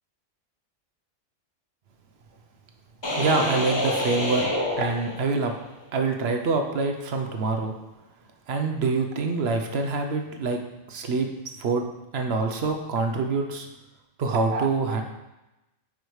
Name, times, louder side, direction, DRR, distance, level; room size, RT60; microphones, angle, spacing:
sound 1, 3.0-5.7, left 1 dB, 25° left, 0.8 m, -28 dB
voice 1, 3.2-4.5 4.8-5.5 5.9-7.7 8.5-10.6 10.9-11.3 11.6-11.8 12.1-13.7 14.2-15.0, right 4 dB, 60° right, 4 dB, 0.9 m, -25 dB
9.3 x 4.8 x 3.2 m, 0.99 s
omnidirectional pair, 1.4 m